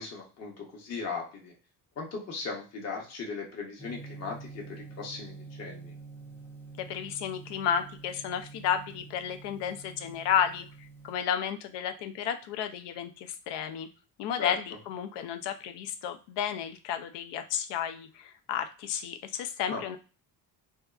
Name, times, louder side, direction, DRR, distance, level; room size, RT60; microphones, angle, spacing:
voice 1, 0.0-1.5 2.0-5.9 14.4-14.5 19.7-19.8, left 4 dB, 40° left, -1 dB, 0.8 m, -38 dB
Gong, 3.8-11.1, right 4 dB, 5° left, 0.4 m, -47 dB
voice 2, 6.8-13.9 14.2-20.0, left 8 dB, 85° left, 8 dB, 0.5 m, -32 dB
2.6 x 2.3 x 2.3 m, 0.35 s
cardioid pair, 120°, 41 cm